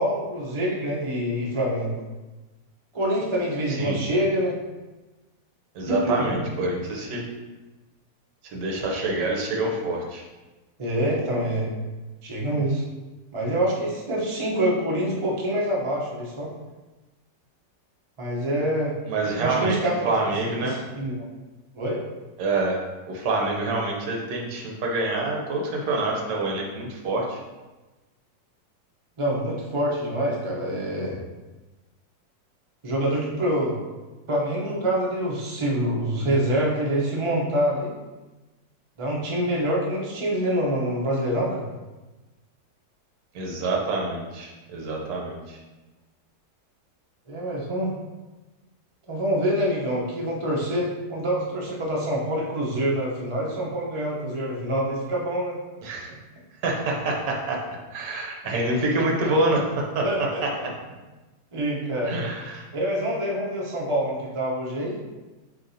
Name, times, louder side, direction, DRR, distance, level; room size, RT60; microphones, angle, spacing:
voice 1, 0.0-1.9 2.9-4.6 5.9-6.4 10.8-11.7 12.2-12.8 13.3-16.5 18.2-18.9 19.4-20.1 20.6-21.3 21.7-22.0 29.2-31.2 32.8-33.8 34.3-37.9 39.0-41.6 47.3-47.9 49.1-55.6 60.0-60.7 61.5-62.2 62.7-65.0, right 1 dB, 35° right, -4 dB, 0.5 m, -26 dB
voice 2, 3.7-4.0 5.7-7.3 8.5-10.2 19.1-19.8 20.0-20.8 22.4-22.8 23.1-27.4 43.3-45.6 55.8-56.1 56.6-60.1 60.4-60.5 62.1-62.7, right 2 dB, 75° right, -1 dB, 1.4 m, -26 dB
7.3 x 2.6 x 2.7 m, 1.2 s
omnidirectional pair, 1.9 m